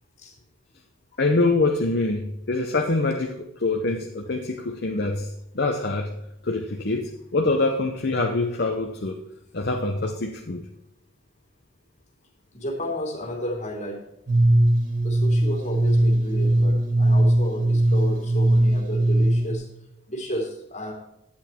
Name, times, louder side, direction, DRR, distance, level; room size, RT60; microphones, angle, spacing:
voice 1, 1.2-6.1 6.4-9.2 9.5-10.6, left 2 dB, 50° left, 2 dB, 0.8 m, -25 dB
voice 2, 12.5-14.0 15.0-19.7 20.1-20.9, equal, 35° left, 1 dB, 2.6 m, -32 dB
sound 1, 14.3-19.5, right 1 dB, 40° right, 1.7 m, -20 dB
10.5 x 8.8 x 4.4 m, 0.83 s
head